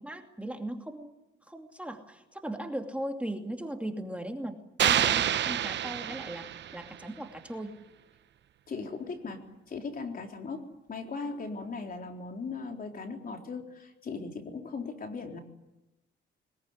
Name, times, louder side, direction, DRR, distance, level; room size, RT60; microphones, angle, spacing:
voice 1, 0.0-1.1 1.5-7.8, right 1 dB, 5° right, 3 dB, 2.6 m, -38 dB
sound 1, 4.8-7.0, right 10 dB, 65° right, 1.0 m, -28 dB
voice 2, 8.7-15.4, left 4 dB, 45° left, 3 dB, 3.9 m, -38 dB
22.5 x 21.0 x 9.8 m, 0.97 s
cardioid pair, 90°, 20 cm